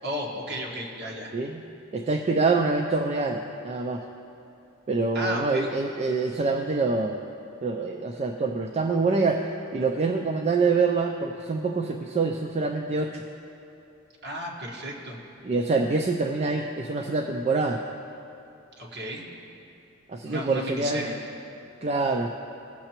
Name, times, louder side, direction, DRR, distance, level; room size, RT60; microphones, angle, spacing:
voice 1, 0.0-1.3 5.1-5.7 6.1-6.2 14.2-15.2 18.8-19.2 20.2-21.1, equal, 50° right, -3 dB, 1.4 m, -33 dB
voice 2, 1.9-4.0 4.9-7.2 7.6-13.2 15.4-17.8 20.1-21.1 21.8-22.3, right 3 dB, 30° right, 2 dB, 0.3 m, -25 dB
17.0 x 6.6 x 3.0 m, 2.7 s
head